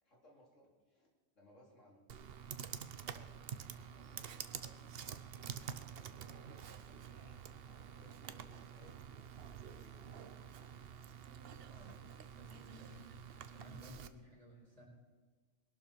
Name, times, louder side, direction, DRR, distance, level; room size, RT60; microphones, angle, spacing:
voice 1, 0.0-1.1 1.3-5.0 6.0-9.3 9.7-10.3, left 1 dB, 85° left, -2 dB, 4.0 m, -65 dB
Computer keyboard, 2.1-14.1, right 7 dB, 55° right, 0.9 m, -48 dB
voice 2, 11.7-12.0 12.4-13.1 13.4-14.9, right 1 dB, 30° right, -4 dB, 5.4 m, -56 dB
21.5 x 12.0 x 4.6 m, 1.4 s
omnidirectional pair, 1.3 m